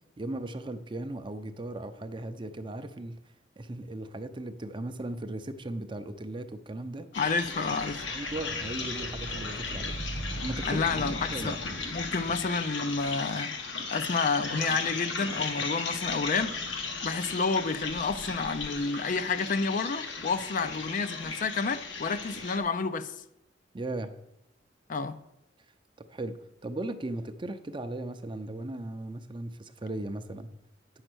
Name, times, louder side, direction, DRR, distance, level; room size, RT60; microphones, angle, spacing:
voice 1, 0.2-3.2 3.6-7.1 8.1-10.0 10.4-10.8 11.3-11.6 23.7-24.1 26.1-30.5, right 2 dB, 25° right, 0.6 m, -37 dB
sound 1, 7.1-22.6, left 3 dB, 85° left, 1.3 m, -35 dB
voice 2, 7.1-8.0 10.7-11.6 11.9-13.5 13.9-16.5 17.0-23.1 24.9-25.2, left 4 dB, 45° left, 0.5 m, -30 dB
8.9 x 6.4 x 6.1 m
head